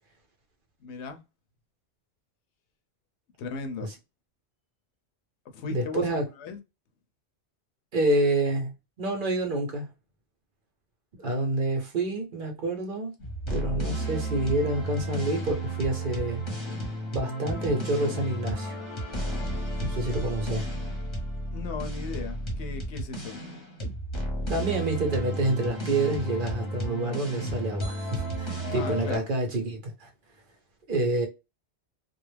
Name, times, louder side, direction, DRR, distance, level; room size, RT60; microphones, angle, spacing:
voice 1, 0.8-1.2 3.4-4.0 5.5-6.6 21.5-23.4 28.7-29.3, left 5 dB, 80° left, 0.9 m, -37 dB
voice 2, 5.7-6.2 7.9-9.9 11.1-13.1 13.5-16.4 17.1-18.8 19.8-20.7 24.5-30.1 30.9-31.3, right 2 dB, 55° right, 0.8 m, -28 dB
sound 1, 13.2-29.2, right 1 dB, 30° left, 0.8 m, -32 dB
2.4 x 2.1 x 3.2 m
omnidirectional pair, 1.1 m